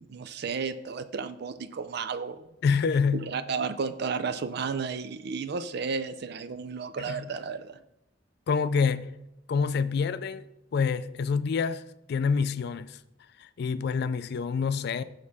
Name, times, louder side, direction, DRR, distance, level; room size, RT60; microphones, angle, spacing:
voice 1, 0.0-2.5 3.1-7.8, right 5 dB, 60° right, 0.4 m, -33 dB
voice 2, 2.6-3.3 7.1-7.3 8.5-9.1 9.5-10.5 10.7-13.0 13.4-15.0, left 5 dB, 60° left, 0.3 m, -27 dB
6.4 x 6.1 x 3.5 m
head